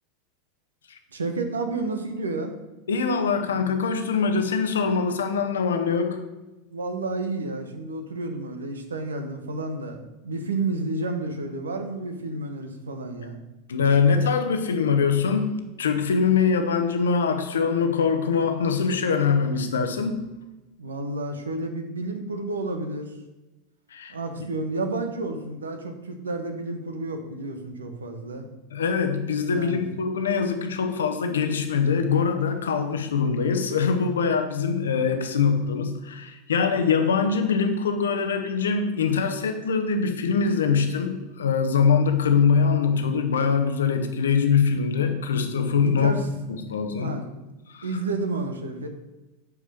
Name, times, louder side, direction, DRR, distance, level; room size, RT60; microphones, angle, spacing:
voice 1, 1.1-2.5 6.7-13.4 20.8-23.1 24.1-28.5 29.5-29.8 45.8-46.3 47.0-47.3 47.8-48.9, right 2 dB, 75° right, 6 dB, 1.2 m, -31 dB
voice 2, 2.9-6.2 13.7-20.3 23.9-24.5 28.7-46.1 46.5-47.2 47.7-47.9, left 5 dB, 70° left, 7 dB, 1.0 m, -23 dB
8.6 x 4.9 x 6.6 m, 1.0 s
figure-of-eight pair, 85°, 0 cm